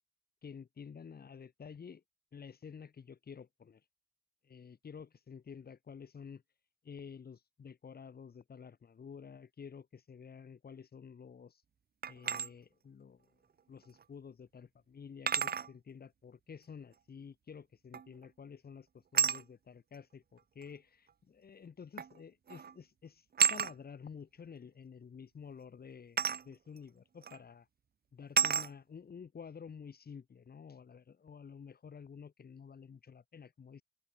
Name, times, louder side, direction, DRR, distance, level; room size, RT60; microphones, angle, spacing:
voice 1, 0.4-2.0 2.3-3.8 4.4-6.4 6.8-11.6 12.1-13.3 13.7-23.2 23.5-27.7 28.1-33.8, left 6 dB, 80° left, 7.0 m, -51 dB
sound 1, 12.0-12.5 14.0-14.1 15.3-15.7 17.9-18.2 19.1-19.4 20.6-20.7 22.0-22.2 22.5-22.7 23.4-23.7 26.2-26.4 27.2-27.4 28.4-28.7, right 7 dB, 80° right, 1.3 m, -30 dB
open air
cardioid pair, 60°, 16 cm